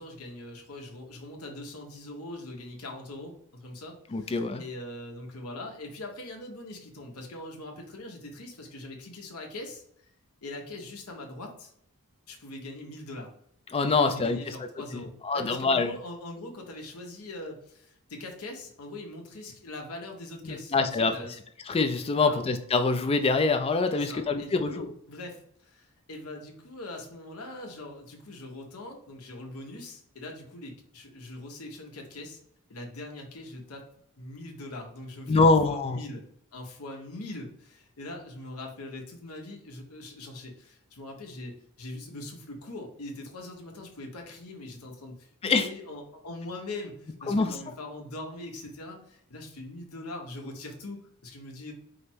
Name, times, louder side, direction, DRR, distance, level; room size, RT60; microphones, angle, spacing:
voice 1, 0.0-9.8 10.4-11.7 12.3-13.3 13.8-21.4 22.2-22.4 23.9-32.4 32.7-33.8 34.2-36.2 36.5-41.5 41.8-51.7, left 2 dB, 80° left, 1 dB, 1.0 m, -42 dB
voice 2, 4.1-4.6 13.7-14.4 14.9-15.9 20.4-21.1 21.7-24.9 35.3-36.0 45.4-45.7 47.3-47.5, left 3 dB, 25° left, 7 dB, 0.3 m, -25 dB
5.0 x 2.1 x 4.4 m, 0.68 s
head